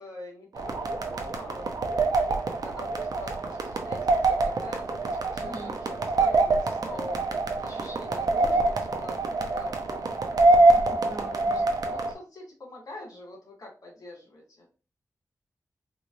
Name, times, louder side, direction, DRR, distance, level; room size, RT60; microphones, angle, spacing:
voice 1, 0.0-2.2 2.6-10.4 11.2-11.5 11.8-14.7, left 2 dB, 75° left, -1 dB, 1.8 m, -45 dB
sound 1, 0.6-12.1, right 2 dB, 85° right, 0.6 m, -25 dB
voice 2, 5.4-5.7 10.7-11.7, right 1 dB, 70° right, 1 dB, 1.2 m, -41 dB
3.8 x 3.1 x 2.6 m, 0.34 s
wide cardioid pair, 80°, 6 cm